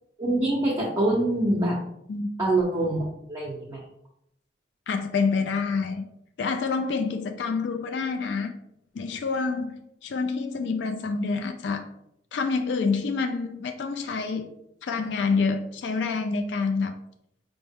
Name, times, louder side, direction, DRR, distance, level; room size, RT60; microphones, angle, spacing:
voice 1, 0.2-1.8 2.4-3.9, right 1 dB, 20° right, -3 dB, 0.6 m, -25 dB
voice 2, 4.9-6.1 6.4-8.5 8.9-11.9 12.3-14.5 14.8-16.9, left 4 dB, 70° left, 7 dB, 0.3 m, -27 dB
4.4 x 2.0 x 3.5 m, 0.77 s
head